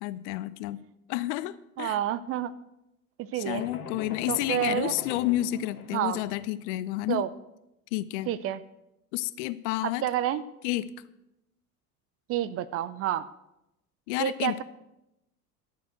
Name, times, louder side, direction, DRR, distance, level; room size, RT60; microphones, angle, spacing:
voice 1, 0.0-0.8 1.1-2.0 3.3-7.3 7.9-8.3 9.1-10.0 10.6-10.9 14.1-14.6, left 16 dB, 50° left, 16 dB, 0.6 m, -30 dB
voice 2, 1.8-2.5 3.2-3.7 4.3-4.9 5.9-6.2 7.1-7.3 8.3-8.6 9.8-10.4 12.3-13.3 14.2-14.6, right 12 dB, 30° right, 14 dB, 0.5 m, -29 dB
sound 1, 3.5-6.4, left 7 dB, 75° left, 1.2 m, -42 dB
11.5 x 6.8 x 7.8 m, 0.88 s
figure-of-eight pair, 70°, 45 cm